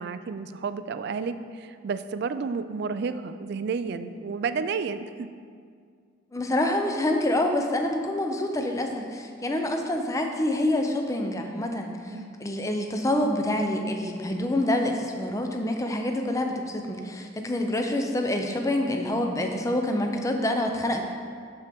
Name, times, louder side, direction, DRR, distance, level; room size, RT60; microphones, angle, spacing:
voice 1, 0.0-5.3 12.1-12.3, right 5 dB, 55° right, 11 dB, 0.3 m, -31 dB
voice 2, 6.3-21.0, left 1 dB, 15° left, 3 dB, 0.5 m, -27 dB
12.0 x 4.4 x 3.5 m, 2.1 s
head